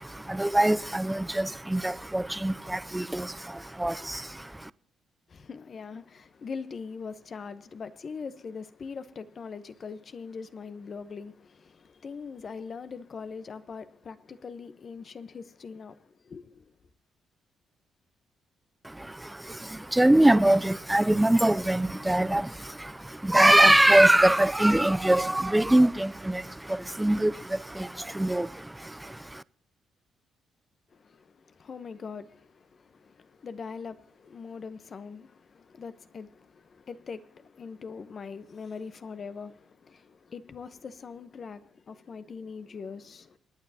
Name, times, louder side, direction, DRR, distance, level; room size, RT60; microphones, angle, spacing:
voice 1, 0.0-4.7 18.8-29.4, right 1 dB, 10° right, 0.4 m, -23 dB
voice 2, 5.3-16.7 30.9-43.4, left 5 dB, 45° left, 0.9 m, -42 dB
28.0 x 9.3 x 2.9 m
cardioid pair, 90°, 0 cm